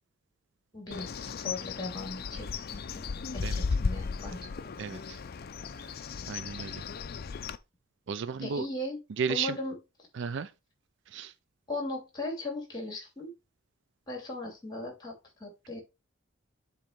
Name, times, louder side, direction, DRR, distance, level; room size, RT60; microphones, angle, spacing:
voice 1, 0.7-3.1 3.3-4.4 8.4-9.0 9.3-9.7 11.7-13.3 14.1-15.8, left 2 dB, 20° left, 2.9 m, -38 dB
Bird, 0.9-7.6, left 5 dB, 45° left, 0.5 m, -35 dB
voice 2, 4.8-5.2 5.8-5.9 6.3-6.8 8.1-8.7 9.2-9.6 10.1-10.5 11.1-11.3, right 6 dB, 60° right, 0.4 m, -34 dB
7.5 x 3.1 x 5.2 m
head